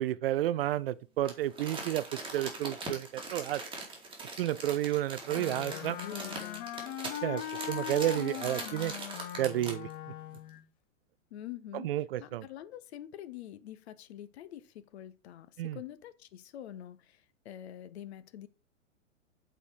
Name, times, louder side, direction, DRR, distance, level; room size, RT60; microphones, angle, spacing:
voice 1, 0.0-2.0 2.3-3.6 4.4-6.0 7.2-7.4 7.7-8.9 9.4-9.9 11.7-12.4 15.6-15.8, right 13 dB, 50° right, 0.4 m, -31 dB
Crumpling crinkling, 1.2-9.9 10.3-10.4, right 3 dB, 15° right, 2.4 m, -42 dB
voice 2, 5.3-6.7 11.3-18.5, left 11 dB, 55° left, 0.9 m, -46 dB
Wind instrument woodwind instrument, 5.3-10.6, left 11 dB, 25° left, 0.5 m, -40 dB
7.9 x 4.4 x 4.9 m
hypercardioid pair, 110°, 39 cm